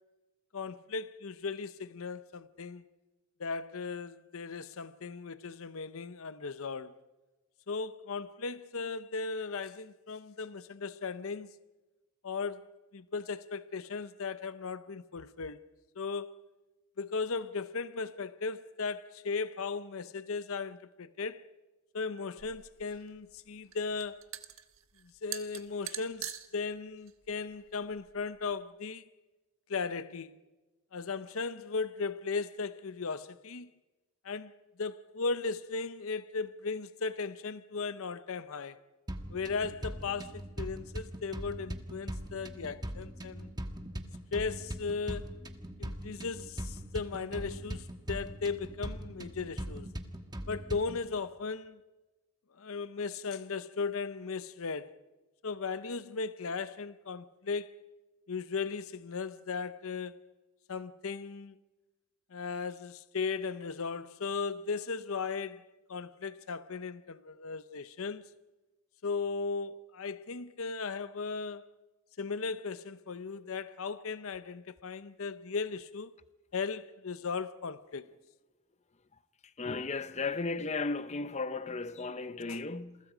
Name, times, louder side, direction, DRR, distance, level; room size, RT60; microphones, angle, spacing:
voice 1, 0.5-2.8 3.4-6.9 7.7-11.5 12.2-12.7 12.9-15.6 16.0-16.4 17.0-21.4 21.9-24.3 25.2-29.1 29.7-30.4 30.9-33.7 34.2-34.5 34.8-38.8 39.3-43.5 44.3-45.3 45.8-49.9 50.5-51.8 52.6-55.0 55.4-57.7 58.3-60.2 60.7-61.6 62.3-68.2 69.0-71.7 72.2-76.1 76.5-78.1 82.5-82.6, left 4 dB, 65° left, 0.7 m, -37 dB
sound 1, 22.4-28.5, right 12 dB, 65° right, 1.3 m, -45 dB
sound 2, 39.1-51.1, equal, 20° right, 1.3 m, -41 dB
voice 2, 79.6-83.0, left 3 dB, 30° left, 0.7 m, -35 dB
28.5 x 23.0 x 5.0 m
head